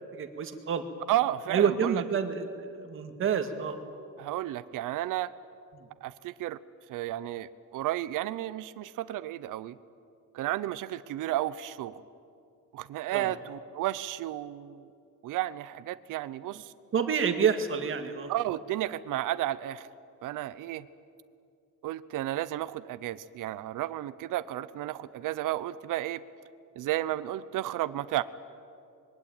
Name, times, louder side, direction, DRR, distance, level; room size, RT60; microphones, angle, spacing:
voice 1, 0.1-0.8 1.5-3.8 5.8-5.9 13.1-13.3 16.9-18.3, right 7 dB, 40° right, 7 dB, 2.0 m, -28 dB
voice 2, 1.1-2.0 4.2-5.3 6.0-6.6 6.9-9.7 10.3-12.0 12.7-14.9 15.2-16.7 18.3-19.9 20.2-20.8 21.8-26.2 26.8-28.2, right 14 dB, 75° right, 14 dB, 0.9 m, -32 dB
25.5 x 22.0 x 9.0 m, 2.5 s
cardioid pair, 170°, 32 cm